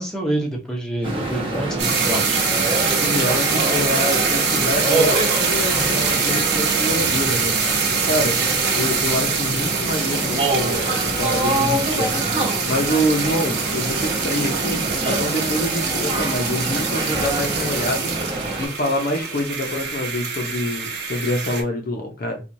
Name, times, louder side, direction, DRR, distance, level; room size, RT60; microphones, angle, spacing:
voice 1, 0.0-2.4, right 1 dB, 5° left, -2 dB, 0.8 m, -27 dB
sound 1, 1.0-18.6, right 2 dB, 25° right, 1.0 m, -25 dB
sound 2, 1.8-21.6, right 5 dB, 55° right, 1.0 m, -24 dB
voice 2, 3.0-7.5 8.0-8.4 8.7-12.2 12.6-18.1 18.6-22.4, left 1 dB, 45° left, 3 dB, 0.6 m, -26 dB
4.5 x 2.3 x 2.6 m, 0.31 s
head